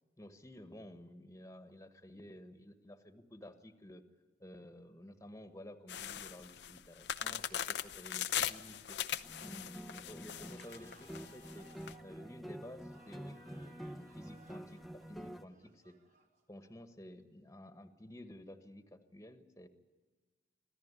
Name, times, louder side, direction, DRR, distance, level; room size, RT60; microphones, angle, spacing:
voice 1, 0.2-4.0 4.4-9.0 9.4-11.7 12.0-15.9 16.5-19.7, left 1 dB, 15° left, 9 dB, 1.4 m, -53 dB
sound 1, 5.9-11.9, left 9 dB, 70° left, 0.8 m, -39 dB
sound 2, 9.2-15.4, equal, ahead, 0.9 m, -48 dB
sound 3, 10.5-16.9, right 2 dB, 45° right, 3.6 m, -63 dB
26.0 x 15.5 x 9.8 m, 1.3 s
head